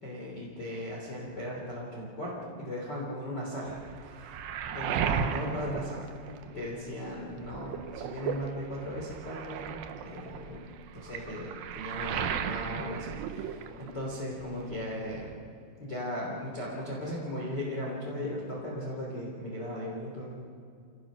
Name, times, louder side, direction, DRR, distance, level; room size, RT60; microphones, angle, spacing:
voice 1, 0.0-3.7 4.0-4.4 4.7-6.0 6.5-9.7 10.0-10.6 10.9-15.3 15.8-20.4, equal, 25° left, -4 dB, 3.3 m, -37 dB
Waves surf, 3.6-6.9 7.2-14.1 14.4-15.3, right 8 dB, 80° right, 2.2 m, -36 dB
28.0 x 17.5 x 6.3 m, 2.4 s
omnidirectional pair, 5.4 m